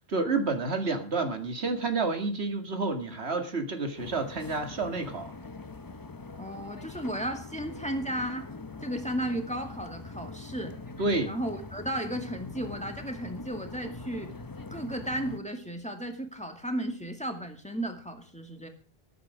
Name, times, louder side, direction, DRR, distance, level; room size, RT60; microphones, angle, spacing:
voice 1, 0.1-5.3 11.0-11.3, right 3 dB, 90° right, 2.2 m, -29 dB
sound 1, 4.0-15.4, left 3 dB, 25° left, 0.7 m, -43 dB
voice 2, 6.4-8.5 8.8-10.7 11.3-14.3 14.7-18.7, right 1 dB, 5° left, 2.2 m, -34 dB
14.5 x 12.0 x 5.0 m
omnidirectional pair, 1.1 m